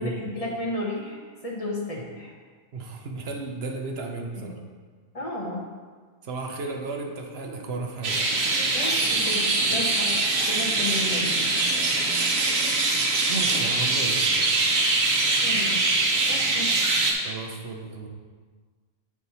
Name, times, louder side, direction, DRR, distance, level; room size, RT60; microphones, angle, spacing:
voice 1, 0.0-2.3 4.4-4.5 5.1-5.6 8.7-11.3 15.4-15.8 16.3-16.7, left 1 dB, 30° left, -3 dB, 1.3 m, -33 dB
voice 2, 2.7-4.6 6.2-8.2 13.3-14.9 17.2-18.1, right 3 dB, 55° right, 2 dB, 1.0 m, -34 dB
sound 1, 8.0-17.1, right 3 dB, 90° right, 1.3 m, -23 dB
7.5 x 4.8 x 4.1 m, 1.5 s
omnidirectional pair, 1.3 m